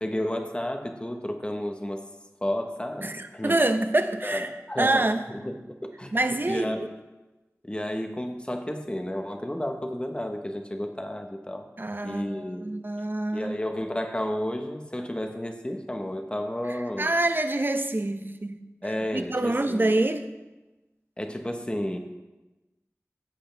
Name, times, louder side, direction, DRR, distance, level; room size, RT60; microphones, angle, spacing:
voice 1, 0.0-2.0 2.4-3.6 4.2-6.1 6.5-6.9 7.6-11.7 12.0-12.7 13.3-17.1 18.8-19.9 21.2-22.0, left 1 dB, 20° left, 5 dB, 1.2 m, -32 dB
voice 2, 3.0-4.5 4.8-5.2 6.1-6.9 11.8-13.6 16.7-18.7 19.1-20.3, right 2 dB, 40° right, 8 dB, 0.8 m, -26 dB
15.0 x 8.2 x 3.4 m, 1.1 s
wide cardioid pair, 45°, 5 cm